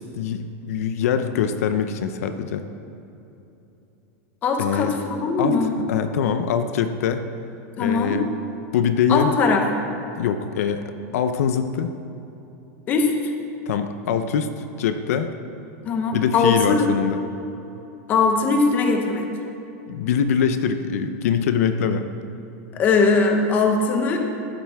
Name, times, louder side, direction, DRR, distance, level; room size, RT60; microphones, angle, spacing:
voice 1, 0.0-2.6 4.6-4.9 5.4-5.5 5.9-7.3 7.8-8.3 8.7-9.3 10.2-11.9 13.7-15.3 16.1-17.2 19.9-22.1, left 7 dB, 65° left, 9 dB, 0.7 m, -23 dB
voice 2, 4.4-5.7 7.8-8.2 9.1-9.6 12.9-13.3 15.8-16.9 18.1-19.3 22.7-24.2, left 4 dB, 20° left, 4 dB, 0.9 m, -20 dB
15.0 x 12.0 x 3.5 m, 3.0 s
supercardioid pair, 180°, 8 cm